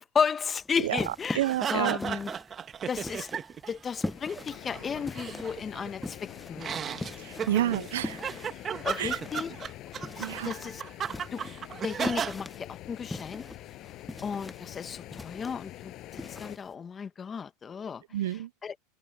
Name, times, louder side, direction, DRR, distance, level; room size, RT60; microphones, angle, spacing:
voice 1, 0.0-1.4 1.7-2.3 2.9-3.3 3.7-6.2 6.5-6.8 8.8-9.5 10.2-10.8 11.3-11.4 11.8-13.5 14.2-18.0 18.6-18.7, left 6 dB, 25° left, 1.3 m, -33 dB
sound 1, 0.6-16.7, left 2 dB, 5° left, 1.0 m, -43 dB
voice 2, 0.8-2.2 7.2-8.4 9.0-9.2 10.2-10.6 18.1-18.5, right 13 dB, 80° right, 0.4 m, -30 dB
sound 2, 1.4-3.8 4.1-6.0 6.6-12.3, right 8 dB, 30° right, 1.4 m, -35 dB
sound 3, 3.9-16.6, left 16 dB, 50° left, 7.4 m, -45 dB
hypercardioid pair, 105°, 0 cm